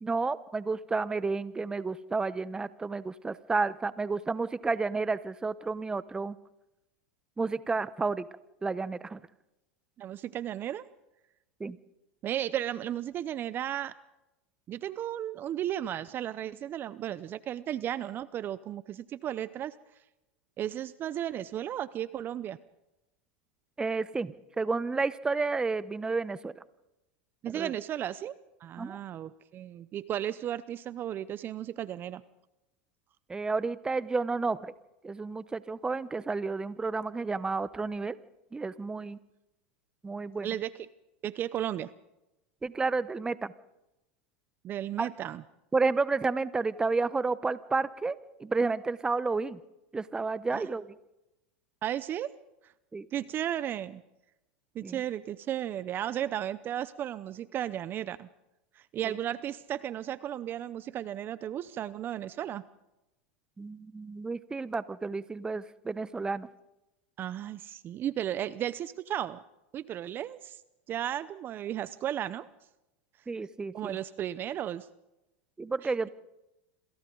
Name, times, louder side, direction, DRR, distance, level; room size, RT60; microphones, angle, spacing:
voice 1, 0.0-6.4 7.4-8.3 8.6-9.2 11.6-11.8 23.8-26.5 27.5-27.7 28.8-29.0 33.3-34.7 35.0-38.2 38.5-39.2 40.0-40.5 42.6-43.5 45.0-45.1 45.7-49.6 49.9-50.9 52.9-53.1 54.8-55.0 59.0-59.2 63.6-66.5 73.3-74.0 75.6-76.1, right 4 dB, 10° right, 16 dB, 0.9 m, -31 dB
voice 2, 10.0-10.9 12.2-13.9 14.7-19.7 20.6-22.6 27.4-28.3 28.6-32.2 40.4-40.7 41.2-41.9 44.6-45.4 50.5-50.7 51.8-52.3 52.6-52.7 53.1-54.0 54.7-58.3 58.8-62.6 67.2-69.4 69.7-70.6 70.9-72.5 73.7-74.9 75.8-76.1, right 11 dB, 35° right, 16 dB, 0.7 m, -34 dB
27.0 x 27.0 x 3.9 m, 0.95 s
supercardioid pair, 115°, 6 cm